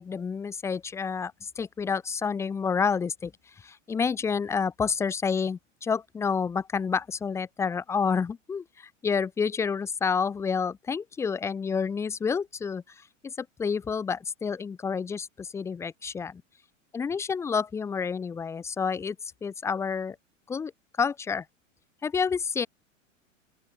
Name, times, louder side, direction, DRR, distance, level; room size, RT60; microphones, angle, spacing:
voice 1, 0.0-3.3 3.6-12.8 13.2-16.4 16.9-19.2 19.4-20.2 20.5-20.7 21.0-21.4 22.0-22.7, left 6 dB, 10° left, 0.4 m, -29 dB
open air
figure-of-eight pair, 95°, 38 cm